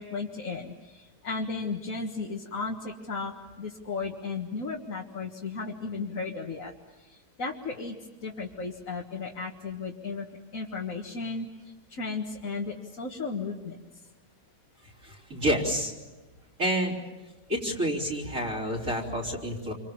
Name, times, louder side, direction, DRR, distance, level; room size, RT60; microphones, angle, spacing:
voice 1, 0.0-6.7 7.1-7.9 8.2-10.3 10.5-11.5 11.9-13.8, left 4 dB, 55° left, -1 dB, 2.1 m, -35 dB
voice 2, 15.0-15.9 16.6-17.0 17.5-19.7, equal, 55° right, -4 dB, 4.2 m, -29 dB
28.0 x 25.0 x 7.2 m, 1.1 s
omnidirectional pair, 1.7 m